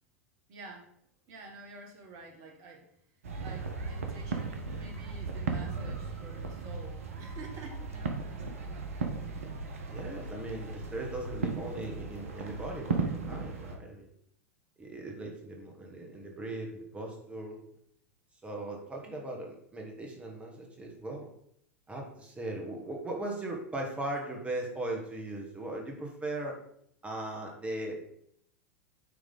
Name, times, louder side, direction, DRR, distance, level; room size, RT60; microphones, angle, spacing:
voice 1, 0.5-0.9 1.3-2.9 3.4-9.1, right 3 dB, 45° right, 3 dB, 1.6 m, -49 dB
sound 1, 3.2-13.8, right 4 dB, 70° right, 1.0 m, -36 dB
voice 2, 9.9-14.1 14.8-17.6 18.4-21.3 21.9-26.6 27.0-28.0, right 2 dB, 15° right, 0 dB, 1.5 m, -38 dB
9.5 x 3.5 x 3.8 m, 0.70 s
figure-of-eight pair, 85°, 8 cm